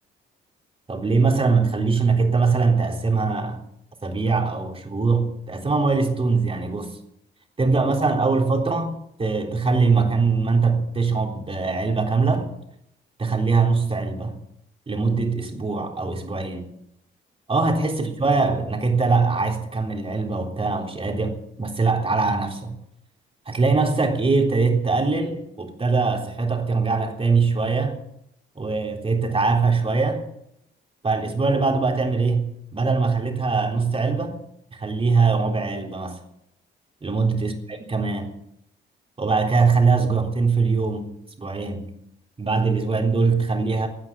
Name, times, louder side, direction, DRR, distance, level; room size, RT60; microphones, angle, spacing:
voice 1, 0.9-3.6 4.0-7.0 7.6-12.5 13.2-14.4 14.9-16.7 17.5-22.8 23.5-28.0 28.6-30.3 31.0-34.4 34.7-36.2 37.0-38.4 39.2-41.1 41.4-41.9 42.4-43.9, right 4 dB, 30° right, 3.6 m, -22 dB
17.5 x 9.6 x 8.7 m
cardioid pair, 90°, 20 cm